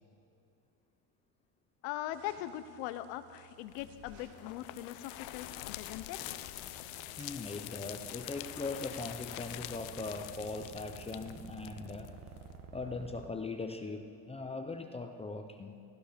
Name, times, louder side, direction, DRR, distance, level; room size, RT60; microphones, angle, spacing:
voice 1, 1.8-6.2, left 13 dB, 90° left, 12 dB, 1.0 m, -41 dB
sound 1, 2.1-11.4, right 6 dB, 80° right, 1.9 m, -62 dB
sound 2, 3.7-12.5, left 16 dB, 65° left, 0.7 m, -45 dB
sound 3, 4.3-13.3, right 6 dB, 45° right, 1.2 m, -53 dB
voice 2, 7.2-12.1 12.7-15.8, left 3 dB, 15° left, 6 dB, 0.6 m, -40 dB
17.5 x 14.0 x 5.2 m, 2.7 s
cardioid pair, 145°, 48 cm